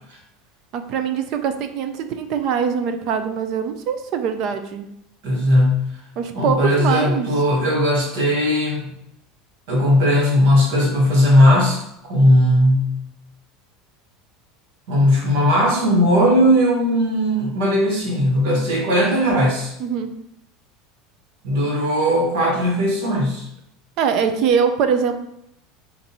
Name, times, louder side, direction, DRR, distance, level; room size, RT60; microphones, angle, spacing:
voice 1, 0.7-4.9 6.2-7.3 19.8-20.1 24.0-25.1, right 7 dB, 45° right, 7 dB, 0.4 m, -22 dB
voice 2, 5.2-5.8 6.3-8.9 9.7-12.9 14.9-19.7 21.4-23.5, equal, 65° right, -2 dB, 1.3 m, -17 dB
5.3 x 2.6 x 2.9 m, 0.78 s
cardioid pair, 170°, 0 cm